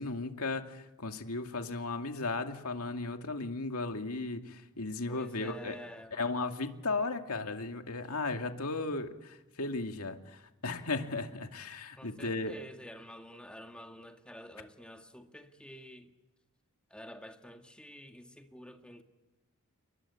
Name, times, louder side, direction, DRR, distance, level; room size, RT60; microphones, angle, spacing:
voice 1, 0.0-5.8 6.1-12.5, left 3 dB, 85° left, 2.4 m, -36 dB
voice 2, 5.1-6.2 12.0-16.1 16.9-19.0, equal, 5° left, 1.9 m, -49 dB
29.0 x 23.0 x 8.4 m
head